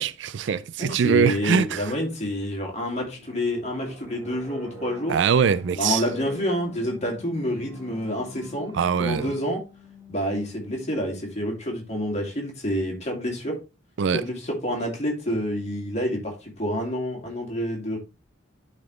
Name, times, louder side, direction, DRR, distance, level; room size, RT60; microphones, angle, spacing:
voice 1, 0.0-1.8 5.1-6.0 8.7-9.3 14.0-14.2, right 6 dB, 60° right, 0.4 m, -22 dB
voice 2, 0.8-5.1 5.8-8.7 9.0-9.6 10.1-13.6 14.1-18.0, equal, 35° left, 2.3 m, -28 dB
sound 1, 2.7-11.5, left 2 dB, 15° right, 2.2 m, -45 dB
10.5 x 4.2 x 3.1 m
head